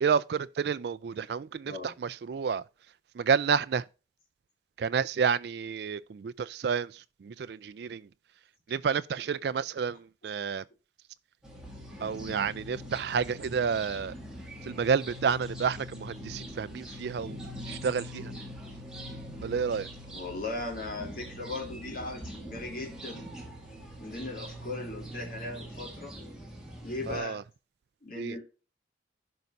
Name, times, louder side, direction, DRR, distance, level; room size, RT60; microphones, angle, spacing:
voice 1, 0.0-1.7 2.3-2.6 3.2-3.8 4.8-6.9 7.3-8.0 8.7-10.0 10.2-10.6 12.0-14.1 14.7-17.4 17.7-18.2 19.4-19.9 27.1-27.4 28.2-28.3, right 6 dB, 60° right, 0.3 m, -29 dB
voice 2, 1.6-1.9 12.0-12.2 20.0-23.2 24.0-26.1 26.8-27.4 28.0-28.4, left 2 dB, 50° left, 3.1 m, -38 dB
sound 1, 11.4-27.2, equal, 5° right, 2.0 m, -43 dB
15.0 x 5.3 x 2.6 m
head